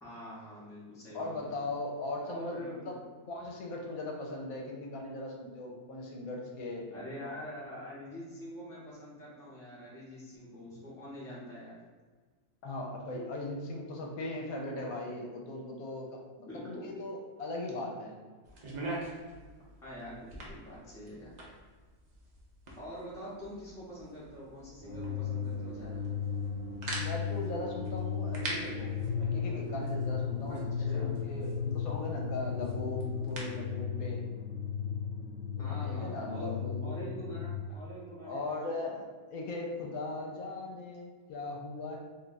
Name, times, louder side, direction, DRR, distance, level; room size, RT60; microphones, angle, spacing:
voice 1, 0.0-1.6 2.3-3.0 6.9-11.8 16.5-16.9 19.8-21.3 22.7-26.0 30.5-30.6 30.9-31.1 35.6-36.5 36.8-38.9, equal, 5° left, -8 dB, 0.5 m, -45 dB
voice 2, 1.1-3.0 3.2-6.9 7.2-7.4 12.6-18.1 27.0-34.3 35.6-37.2 38.2-39.0 39.3-42.0, left 2 dB, 75° left, 0 dB, 1.0 m, -39 dB
sound 1, 18.4-33.7, right 1 dB, 55° right, 0.4 m, -45 dB
sound 2, 24.8-37.6, left 6 dB, 20° right, 0.8 m, -35 dB
2.7 x 2.3 x 3.9 m, 1.4 s
omnidirectional pair, 1.6 m